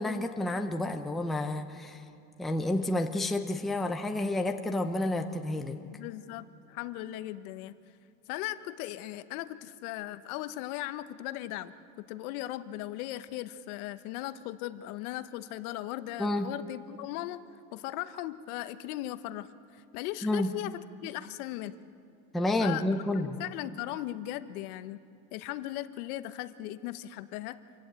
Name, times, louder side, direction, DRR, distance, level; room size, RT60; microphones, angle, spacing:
voice 1, 0.0-2.0 2.4-5.8 16.2-16.5 20.2-20.5 22.3-23.4, left 1 dB, ahead, 4 dB, 0.7 m, -30 dB
voice 2, 5.9-7.8 8.3-17.4 17.7-21.7 22.6-22.8 23.1-25.0 25.3-27.6, left 14 dB, 60° left, 12 dB, 1.1 m, -38 dB
26.5 x 16.0 x 8.9 m, 2.6 s
supercardioid pair, 145°, 49 cm